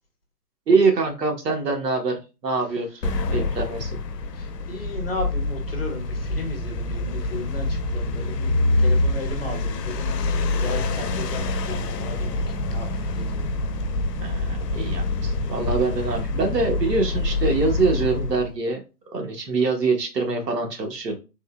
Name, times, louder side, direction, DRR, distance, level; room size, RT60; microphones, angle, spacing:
voice 1, 0.7-4.0 9.4-9.8 14.2-18.8 19.1-21.2, right 4 dB, 85° right, 3 dB, 1.1 m, -24 dB
sound 1, 3.0-18.5, left 2 dB, 80° left, 0.6 m, -26 dB
voice 2, 4.3-8.5 8.8-10.2 10.5-13.6, left 2 dB, 40° left, 2 dB, 0.7 m, -35 dB
3.5 x 2.1 x 2.3 m, 0.29 s
hypercardioid pair, 175°, 48 cm